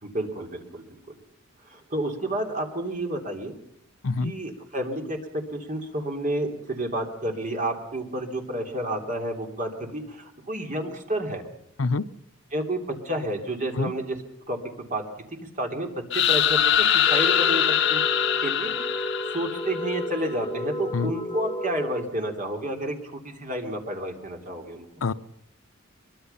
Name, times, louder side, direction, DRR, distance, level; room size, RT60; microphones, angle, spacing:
voice 1, 0.0-1.2 1.6-3.5 4.2-5.2 5.5-11.4 12.5-14.2 14.5-15.0 15.3-18.0 18.4-24.8, right 1 dB, 35° right, 3 dB, 3.2 m, -30 dB
voice 2, 4.0-4.3 11.8-12.0 13.8-13.9 20.9-21.1 25.0-25.1, left 3 dB, 75° left, 12 dB, 0.7 m, -25 dB
sound 1, 16.1-19.9, left 10 dB, 60° left, 1.4 m, -23 dB
sound 2, 17.1-22.0, left 1 dB, 20° left, 0.9 m, -33 dB
23.0 x 22.5 x 5.7 m, 0.73 s
head